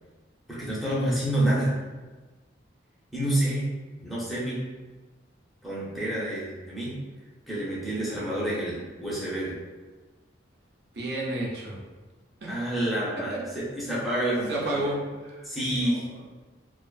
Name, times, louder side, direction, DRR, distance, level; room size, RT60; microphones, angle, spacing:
voice 1, 0.5-1.7 3.1-3.6 4.0-4.6 5.6-6.9 7.5-9.6 12.5-14.8 15.4-16.0, right 1 dB, ahead, -8 dB, 0.5 m, -28 dB
voice 2, 10.9-11.8 12.4-12.5 13.3-13.5 14.5-15.0 15.2-16.2, right 1 dB, 60° right, -3 dB, 0.5 m, -32 dB
2.4 x 2.4 x 2.3 m, 1.3 s
head